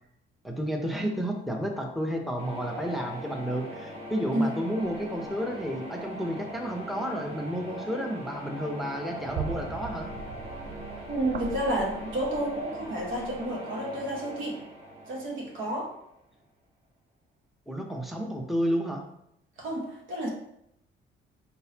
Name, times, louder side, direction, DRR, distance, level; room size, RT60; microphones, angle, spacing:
voice 1, 0.4-10.1 17.7-19.0, equal, ahead, 1 dB, 0.8 m, -31 dB
sound 1, 2.4-16.2, equal, 30° right, 1.4 m, -41 dB
sound 2, 4.8-5.3 6.5-6.6 7.1-7.4 7.8-8.1 8.5-13.5, right 6 dB, 50° right, 0.4 m, -41 dB
voice 2, 11.1-14.6 15.1-15.9 19.6-20.3, right 1 dB, 80° right, -1 dB, 1.4 m, -30 dB
4.5 x 3.9 x 2.8 m, 0.78 s
cardioid pair, 90°, 20 cm